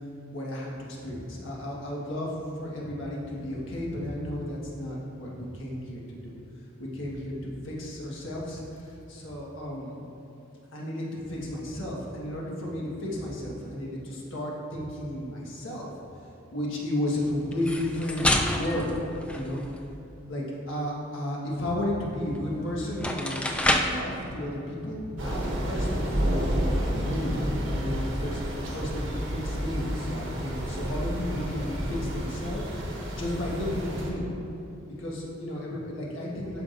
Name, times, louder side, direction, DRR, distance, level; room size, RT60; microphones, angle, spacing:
voice 1, 0.3-6.3 6.8-10.1 10.7-15.9 16.5-18.9 19.3-19.6 20.3-34.3 35.0-36.6, left 1 dB, 80° left, -4 dB, 1.5 m, -33 dB
sound 1, 17.5-19.9 22.4-22.5 22.9-24.1, left 1 dB, 5° left, 0.3 m, -28 dB
Thunder / Rain, 25.2-34.1, equal, 80° right, 1.1 m, -30 dB
12.0 x 4.9 x 2.6 m, 2.8 s
head